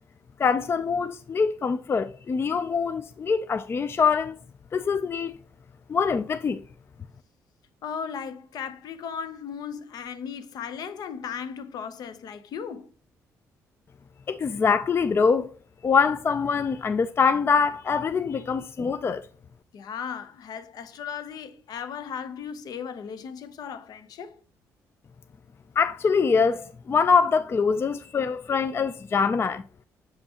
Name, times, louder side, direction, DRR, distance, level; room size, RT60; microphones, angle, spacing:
voice 1, 0.4-4.3 4.7-5.3 5.9-6.6 14.3-15.5 15.8-19.2 25.8-29.6, left 5 dB, 35° left, 0.3 m, -24 dB
voice 2, 7.8-12.9 19.7-24.4, left 7 dB, 65° left, 0.7 m, -36 dB
7.0 x 5.3 x 2.9 m
supercardioid pair, 65°, 7 cm